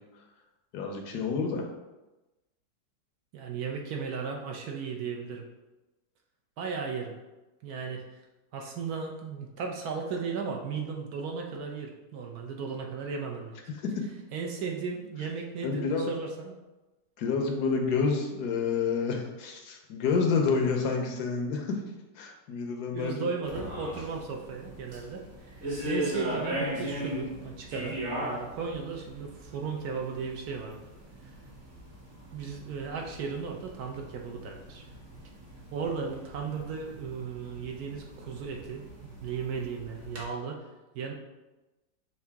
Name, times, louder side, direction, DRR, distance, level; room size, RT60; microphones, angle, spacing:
voice 1, 0.7-1.7 13.7-14.0 15.6-16.1 17.2-21.8 22.1-23.3, left 5 dB, 70° left, 2 dB, 1.1 m, -29 dB
voice 2, 3.3-5.5 6.6-7.1 7.6-8.2 8.5-13.6 14.3-16.5 22.9-30.8 31.2-31.4 32.3-34.8 35.7-40.7 40.9-41.1, right 5 dB, 70° right, 1 dB, 1.0 m, -36 dB
sound 1, 23.4-40.2, equal, 45° right, 1.2 m, -39 dB
5.7 x 2.6 x 3.4 m, 1.1 s
omnidirectional pair, 1.9 m